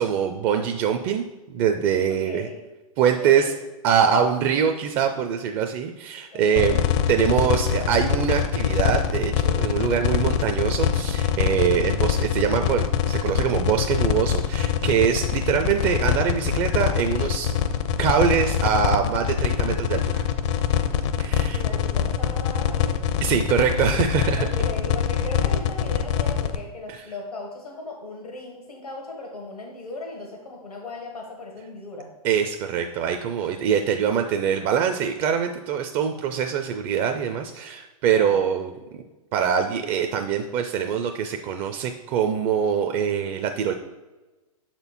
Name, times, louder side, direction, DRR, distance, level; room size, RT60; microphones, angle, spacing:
voice 1, 0.0-2.5 3.0-3.5 3.8-6.8 7.1-17.5 18.0-20.2 21.2-21.6 23.2-24.5 32.2-38.7 39.3-43.7, right 7 dB, 30° right, 5 dB, 0.4 m, -23 dB
voice 2, 2.1-2.6 3.0-3.6 6.3-6.8 21.5-23.0 24.4-32.1 38.1-38.5, left 2 dB, 90° left, 0 dB, 1.5 m, -37 dB
sound 1, 6.6-26.6, left 9 dB, 50° left, 0.6 m, -23 dB
6.6 x 4.4 x 4.1 m, 1.1 s
hypercardioid pair, 115°, 19 cm